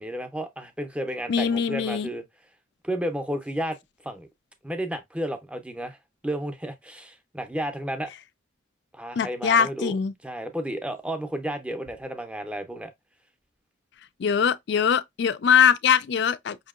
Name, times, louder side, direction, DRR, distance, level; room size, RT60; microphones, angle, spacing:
voice 1, 0.0-2.2 2.8-3.8 4.0-4.3 4.6-6.0 6.2-8.1 8.9-10.0 10.2-12.9, right 1 dB, 5° right, 0.6 m, -32 dB
voice 2, 1.3-2.1 9.2-10.1 14.2-16.6, left 7 dB, 55° left, 0.4 m, -22 dB
5.6 x 2.7 x 2.4 m
head